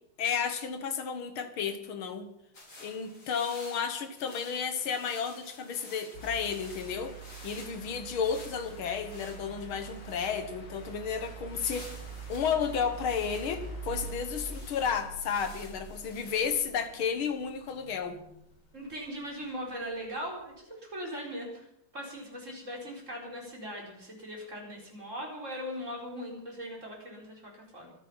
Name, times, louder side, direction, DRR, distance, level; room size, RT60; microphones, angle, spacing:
voice 1, 0.2-2.3 2.8-7.2 7.4-11.9 12.3-18.2, left 6 dB, 85° left, 9 dB, 2.3 m, -32 dB
sound 1, 2.5-16.6, left 2 dB, 40° left, 3.7 m, -52 dB
sound 2, 6.1-18.4 19.7-19.8, right 4 dB, 55° left, 3.4 m, -44 dB
voice 2, 18.7-21.7 21.9-27.9, equal, 35° right, -1 dB, 5.1 m, -40 dB
25.0 x 8.9 x 5.7 m, 0.75 s
omnidirectional pair, 2.2 m